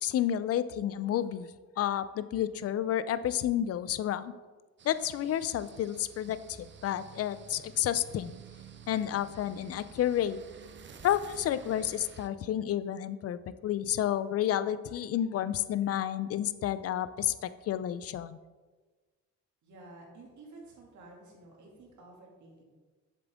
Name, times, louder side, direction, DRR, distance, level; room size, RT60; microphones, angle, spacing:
voice 1, 0.0-1.5 1.8-4.3 4.8-8.3 8.9-10.4 11.0-18.4, left 11 dB, 55° left, 14 dB, 0.4 m, -30 dB
sound 1, 4.8-12.3, right 6 dB, 40° right, 0.7 m, -52 dB
voice 2, 19.6-22.6, right 2 dB, 70° right, -1 dB, 2.4 m, -52 dB
7.6 x 6.9 x 3.5 m, 1.3 s
cardioid pair, 90°, 30 cm